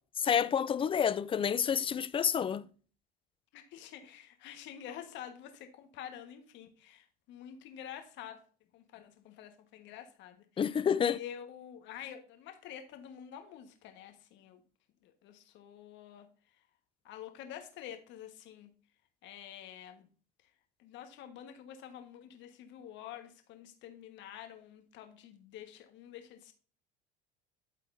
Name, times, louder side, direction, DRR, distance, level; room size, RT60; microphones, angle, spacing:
voice 1, 0.2-2.6 10.6-11.2, left 8 dB, 25° left, 0.4 m, -29 dB
voice 2, 3.5-8.4 8.7-10.7 11.1-14.6 15.0-16.3 17.0-18.7 19.2-20.1 20.8-26.5, left 10 dB, 60° left, 1.4 m, -48 dB
12.0 x 4.1 x 2.6 m
supercardioid pair, 90°, 21 cm